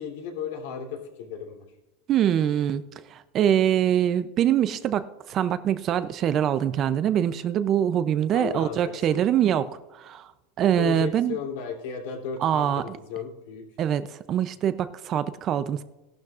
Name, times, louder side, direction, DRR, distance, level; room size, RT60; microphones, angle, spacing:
voice 1, 0.0-1.6 8.3-9.6 10.8-13.6, left 7 dB, 65° left, 1 dB, 3.0 m, -35 dB
voice 2, 2.1-2.8 3.1-9.7 9.9-10.3 10.6-11.4 12.4-13.0 13.8-15.8, right 10 dB, 30° right, 13 dB, 0.4 m, -24 dB
17.0 x 12.0 x 2.4 m, 1.0 s
supercardioid pair, 165°, 0 cm